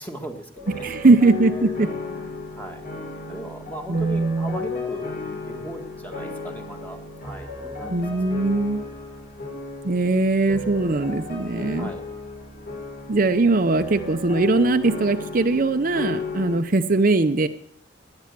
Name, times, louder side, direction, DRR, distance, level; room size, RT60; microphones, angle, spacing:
voice 1, 0.0-1.1 1.5-2.9 3.3-7.9 8.3-8.4 11.8-12.1, right 1 dB, 10° left, 4 dB, 1.8 m, -38 dB
Emotional Piano Background Music, 0.6-16.6, left 3 dB, 50° left, 5.3 m, -34 dB
voice 2, 0.8-1.9 3.9-4.6 7.9-8.8 9.8-11.9 13.1-17.5, right 3 dB, 45° right, 8 dB, 0.7 m, -20 dB
19.0 x 10.5 x 6.8 m, 0.70 s
head